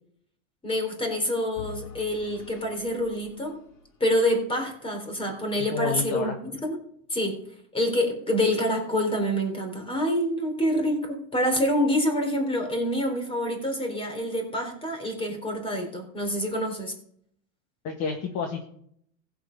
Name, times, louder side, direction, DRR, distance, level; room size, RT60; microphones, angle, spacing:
voice 1, 0.6-3.6 4.0-6.8 7.1-7.4 7.7-16.9, equal, 15° left, 4 dB, 3.8 m, -27 dB
Vehicle / Engine, 1.6-4.6, left 5 dB, 70° left, 3.1 m, -46 dB
voice 2, 5.7-6.3 17.8-18.6, left 5 dB, 40° left, 3 dB, 1.6 m, -29 dB
15.5 x 8.0 x 5.3 m, 0.66 s
supercardioid pair, 140°, 41 cm